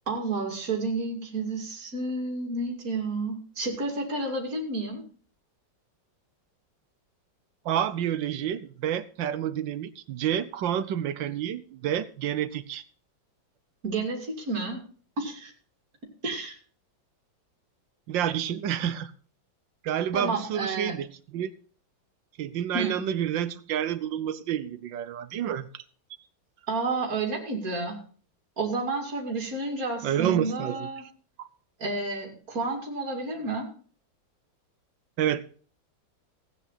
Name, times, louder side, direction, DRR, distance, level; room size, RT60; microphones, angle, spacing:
voice 1, 0.1-5.0 13.8-14.8 15.2-15.5 16.2-16.5 20.1-21.0 22.7-23.0 26.7-28.0 28.6-31.0 31.8-33.7, right 3 dB, 50° right, 2 dB, 3.2 m, -30 dB
voice 2, 7.6-12.8 18.1-19.1 19.8-21.5 22.4-25.8 30.0-30.9 31.4-31.5 35.2-35.4, right 10 dB, 75° right, 14 dB, 1.5 m, -29 dB
16.0 x 9.2 x 4.1 m, 0.42 s
omnidirectional pair, 2.1 m